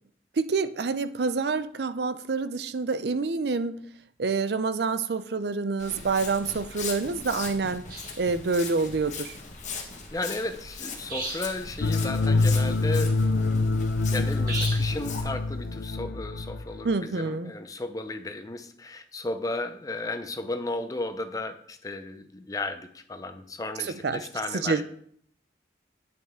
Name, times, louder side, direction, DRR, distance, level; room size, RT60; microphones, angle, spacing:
voice 1, 0.4-3.8 4.2-7.8 8.2-9.3 16.8-17.5 24.0-24.2 24.5-24.8, right 4 dB, 70° right, 13 dB, 0.5 m, -27 dB
Walk footsteps, 5.8-15.2, left 5 dB, 40° left, 1.4 m, -39 dB
sound 1, 7.9-8.2 11.1-11.7 14.5-15.0, right 2 dB, 50° right, 2.1 m, -35 dB
voice 2, 10.1-13.8 14.1-24.8, left 2 dB, 20° left, 8 dB, 0.6 m, -34 dB
sound 2, 11.8-16.9, left 3 dB, 90° left, 0.5 m, -25 dB
8.9 x 8.7 x 3.7 m, 0.65 s
head